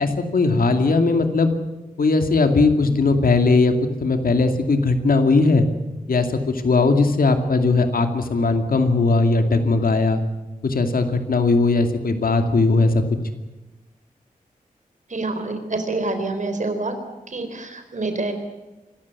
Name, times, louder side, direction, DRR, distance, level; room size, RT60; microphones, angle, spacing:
voice 1, 0.0-1.5 2.0-3.7 4.0-5.7 6.1-10.2 10.6-13.0, left 3 dB, 85° left, 7 dB, 2.5 m, -18 dB
voice 2, 15.1-17.0 17.3-18.3, right 2 dB, 60° right, 7 dB, 4.0 m, -26 dB
25.5 x 14.5 x 9.6 m, 1.1 s
wide cardioid pair, 85°, 15 cm